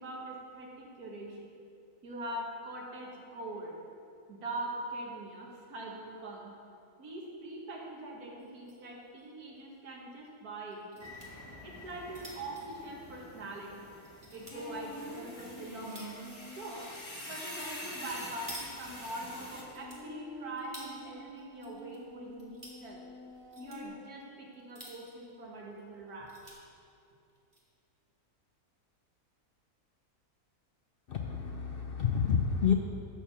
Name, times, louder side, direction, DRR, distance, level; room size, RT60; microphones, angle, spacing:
voice 1, 0.0-1.5 2.0-3.8 4.3-6.6 7.0-11.1 11.6-13.9 14.3-16.2 16.5-16.9 17.3-23.0 23.6-26.4, right 1 dB, 75° right, -2 dB, 2.0 m, -43 dB
sound 1, 8.4-8.9 9.2-9.3 9.6-9.7 10.7-11.3 11.8-13.6 14.0-14.6 15.2-16.3 17.4-17.7 18.0-19.3 19.6-20.9 21.4-22.0 22.3-22.8 23.3-23.8 24.5-25.2 25.7-25.8 26.1-26.6 27.3-27.6, right 1 dB, 20° right, 1.6 m, -50 dB
sound 2, 11.0-19.6, left 1 dB, 20° left, 1.1 m, -46 dB
sound 3, 14.5-16.7 18.8-23.9, equal, 90° left, 2.7 m, -48 dB
voice 2, 31.1-32.7, left 7 dB, 70° left, 3 dB, 0.5 m, -29 dB
11.0 x 4.6 x 7.1 m, 2.5 s
omnidirectional pair, 1.6 m